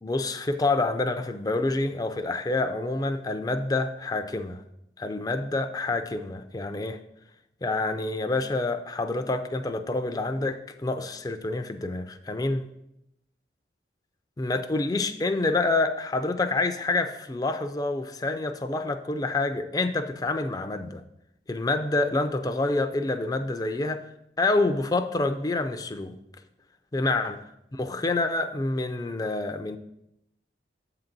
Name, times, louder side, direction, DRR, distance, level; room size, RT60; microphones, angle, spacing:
voice 1, 0.0-4.6 5.0-7.0 7.6-12.6 14.4-21.0 21.5-24.0 24.4-26.2 26.9-27.4 27.7-29.8, left 2 dB, 20° left, 7 dB, 0.4 m, -27 dB
7.9 x 3.9 x 5.9 m, 0.81 s
head